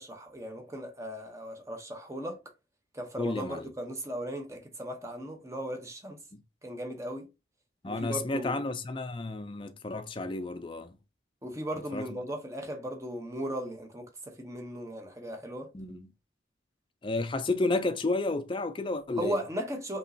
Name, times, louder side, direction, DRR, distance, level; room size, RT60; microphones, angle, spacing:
voice 1, 0.0-2.4 2.9-6.2 6.6-7.3 7.8-8.6 11.4-15.7 19.2-20.0, right 1 dB, 15° right, 0.8 m, -37 dB
voice 2, 3.2-3.7 7.8-11.0 11.9-12.1 15.7-16.1 17.0-19.4, left 2 dB, 25° left, 0.4 m, -31 dB
5.2 x 3.1 x 2.7 m
head